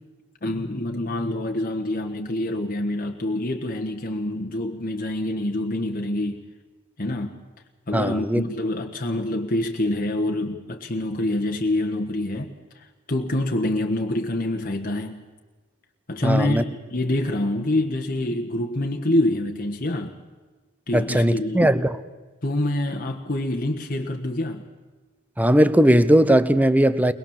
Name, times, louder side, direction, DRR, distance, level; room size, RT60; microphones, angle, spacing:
voice 1, 0.4-6.4 7.0-7.4 7.9-15.2 16.1-20.1 20.9-21.7 22.4-24.6, left 1 dB, 45° left, 1.4 m, -26 dB
voice 2, 7.9-8.4 16.2-16.6 20.9-22.0 25.4-27.1, right 1 dB, 10° right, 0.8 m, -18 dB
22.5 x 21.0 x 7.3 m
head